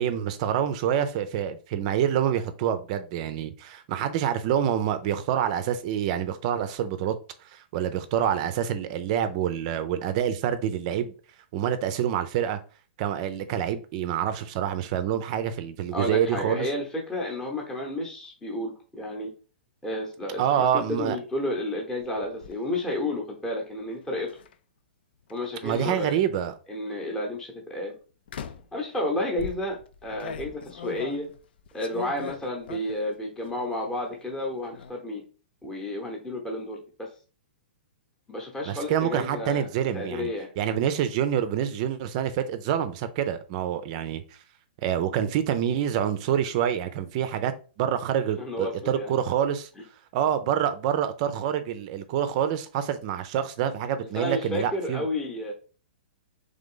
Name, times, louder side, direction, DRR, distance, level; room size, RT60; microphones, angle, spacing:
voice 1, 0.0-7.1 7.5-11.1 11.5-12.6 13.0-16.7 20.4-21.2 25.6-26.5 38.7-40.3 40.6-44.2 44.8-47.5 47.8-49.7 50.1-55.1, right 9 dB, 40° right, 0.5 m, -27 dB
voice 2, 15.9-19.3 19.8-24.3 25.3-26.2 26.7-27.9 28.7-31.3 31.7-35.2 35.6-37.1 38.3-39.7 39.9-40.5 48.4-49.2 54.1-55.5, left 1 dB, 10° left, 0.9 m, -31 dB
sound 1, 22.0-22.6 24.3-24.5 25.3-26.1 26.9-27.2 28.3-28.8 29.4-33.1 33.5-34.0 34.3-34.9, left 7 dB, 65° left, 0.5 m, -40 dB
3.8 x 3.3 x 3.7 m
hypercardioid pair, 145°, 6 cm